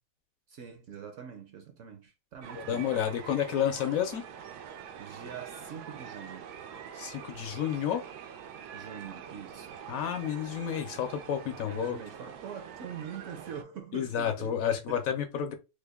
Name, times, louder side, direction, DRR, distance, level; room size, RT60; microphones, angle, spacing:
voice 1, 0.5-3.1 5.0-6.5 8.7-9.8 11.6-15.0, right 7 dB, 65° right, 0.8 m, -44 dB
sound 1, 2.4-13.6, right 8 dB, 85° right, 1.2 m, -45 dB
voice 2, 2.5-4.2 6.9-8.0 9.9-12.0 13.9-15.6, left 9 dB, 70° left, 1.0 m, -30 dB
3.4 x 2.2 x 3.4 m
omnidirectional pair, 1.7 m